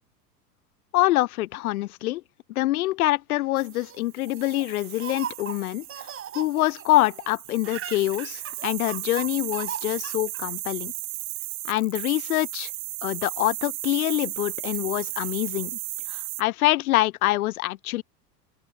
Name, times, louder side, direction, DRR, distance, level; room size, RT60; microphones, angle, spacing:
voice 1, 0.9-2.2 2.6-5.9 6.3-10.9 11.7-12.7 13.0-15.8 16.1-18.0, left 17 dB, 65° left, 0.5 m, -25 dB
Laughter, 3.5-7.3 7.5-10.4, right 9 dB, 25° right, 6.1 m, -38 dB
sound 1, 3.6-16.4, right 25 dB, 45° right, 1.7 m, -35 dB
open air
figure-of-eight pair, 90°, 48 cm